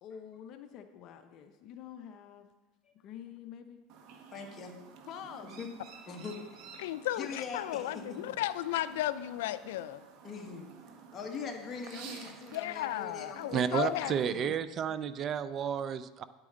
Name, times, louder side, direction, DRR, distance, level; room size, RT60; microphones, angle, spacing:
voice 1, 0.0-2.5 2.9-3.8 5.1-5.5, left 9 dB, 50° left, 7 dB, 0.7 m, -47 dB
Chirp tweet, 3.9-14.3, right 5 dB, 60° right, 1.1 m, -52 dB
voice 2, 4.3-4.7 5.6-5.7 6.1-6.7 7.1-8.2 10.2-10.7 11.1-14.1, left 5 dB, 30° left, 1 dB, 1.6 m, -42 dB
voice 3, 6.8-10.0 12.5-14.5, left 13 dB, 85° left, 14 dB, 0.4 m, -34 dB
voice 4, 13.5-16.2, right 8 dB, 35° right, 14 dB, 0.5 m, -31 dB
9.6 x 8.5 x 3.9 m, 1.2 s
supercardioid pair, 130°, 0 cm